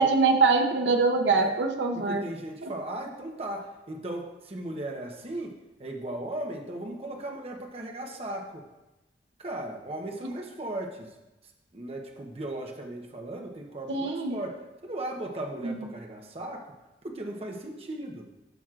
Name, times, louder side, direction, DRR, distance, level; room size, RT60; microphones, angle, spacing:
voice 1, 0.0-2.2 2.6-2.7 13.9-14.4 15.6-15.7, right 4 dB, 90° right, 4 dB, 0.7 m, -23 dB
voice 2, 1.9-8.6 9.4-11.1 11.7-14.6 14.8-16.7 17.0-18.3, right 1 dB, 35° right, 1 dB, 0.8 m, -37 dB
12.0 x 6.1 x 2.4 m, 1.0 s
head